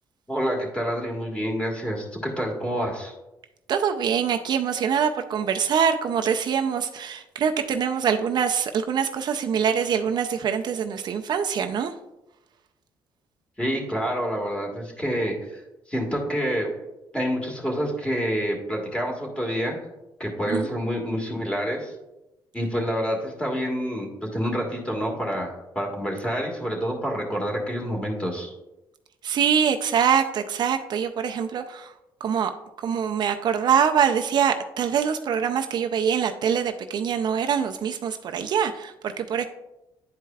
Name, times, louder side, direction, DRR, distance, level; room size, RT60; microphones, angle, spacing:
voice 1, 0.3-3.1 13.6-15.6 15.9-16.7 17.1-19.8 20.2-21.9 22.5-28.5, equal, 10° left, 0 dB, 1.6 m, -28 dB
voice 2, 3.7-11.9 20.5-20.8 29.2-31.9 32.2-32.5 32.8-39.4, right 7 dB, 55° right, 6 dB, 0.4 m, -24 dB
10.0 x 4.6 x 2.3 m, 0.94 s
cardioid pair, 100°, 9 cm